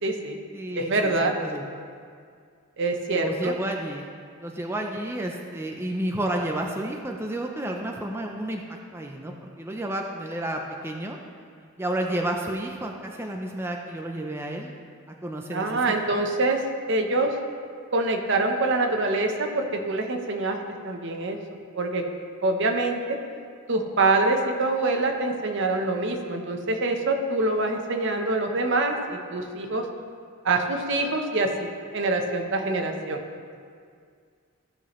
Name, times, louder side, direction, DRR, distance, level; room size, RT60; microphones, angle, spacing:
voice 1, 0.0-0.4 0.8-1.3 2.8-3.5 15.5-16.6 16.9-17.3 17.9-20.6 20.8-21.4 21.8-22.0 22.4-23.0 23.7-29.8 30.4-31.5 31.9-33.2, right 2 dB, 60° right, 4 dB, 0.9 m, -25 dB
voice 2, 0.5-1.6 3.1-4.1 4.4-11.2 11.8-14.7 15.2-15.7 16.1-16.2, right 1 dB, 10° right, 1 dB, 0.5 m, -31 dB
15.0 x 5.9 x 3.1 m, 2.2 s
head